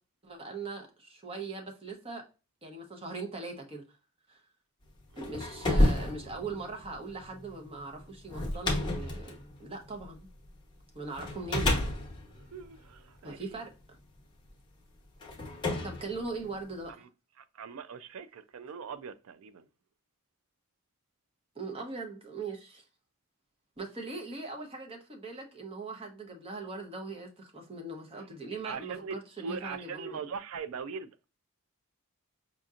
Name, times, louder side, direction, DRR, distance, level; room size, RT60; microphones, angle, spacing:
voice 1, 0.2-2.2 2.6-3.8 4.3-4.4 5.2-10.3 10.9-11.8 13.2-13.7 15.8-17.1 21.5-22.8 23.8-30.2, right 3 dB, 25° right, 0.8 m, -40 dB
sound 1, 5.0-10.6 11.2-13.6 14.5-14.6 15.2-16.9, left 1 dB, 20° left, 0.9 m, -31 dB
voice 2, 12.5-13.4 17.4-19.6 28.6-31.2, right 5 dB, 75° right, 0.4 m, -41 dB
5.1 x 2.8 x 2.4 m
head